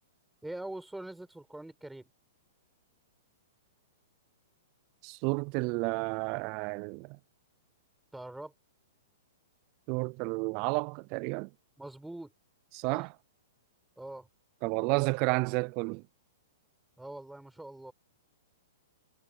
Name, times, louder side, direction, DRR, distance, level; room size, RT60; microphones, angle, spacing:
voice 1, 0.4-2.1 8.1-8.5 11.8-12.3 12.9-13.1 14.0-14.3 17.0-17.9, right 1 dB, 5° right, 6.4 m, -43 dB
voice 2, 5.0-7.2 9.9-11.5 12.7-13.1 14.6-16.0, right 32 dB, 40° right, 0.5 m, -31 dB
hypercardioid pair, 115°, 0 cm